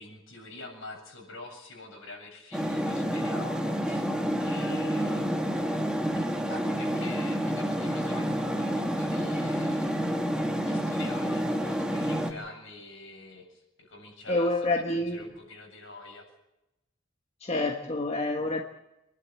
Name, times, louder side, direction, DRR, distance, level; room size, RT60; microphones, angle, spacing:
voice 1, 0.0-4.1 4.4-5.6 6.1-10.1 10.6-16.3, left 2 dB, 70° left, 1 dB, 7.6 m, -46 dB
sound 1, 2.5-12.3, equal, 5° right, 1.4 m, -29 dB
voice 2, 14.3-15.2 17.4-18.6, left 2 dB, 30° left, 2 dB, 1.4 m, -27 dB
25.5 x 11.5 x 8.8 m, 0.91 s
head